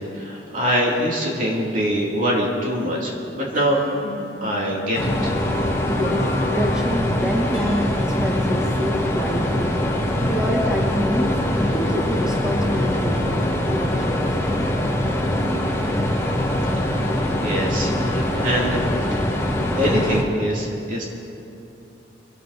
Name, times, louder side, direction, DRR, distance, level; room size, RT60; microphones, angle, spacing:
voice 1, 0.0-3.8 4.1-5.3 17.4-18.8 19.1-19.4 19.8-21.0, equal, 45° right, -3 dB, 2.9 m, -24 dB
sound 1, 3.5-10.4, left 1 dB, 55° left, 3.1 m, -35 dB
sound 2, 4.9-20.2, left 1 dB, 15° left, 1.3 m, -23 dB
voice 2, 5.9-13.4 13.7-14.3, equal, 5° right, -3 dB, 1.3 m, -27 dB
23.0 x 12.5 x 4.2 m, 2.8 s
head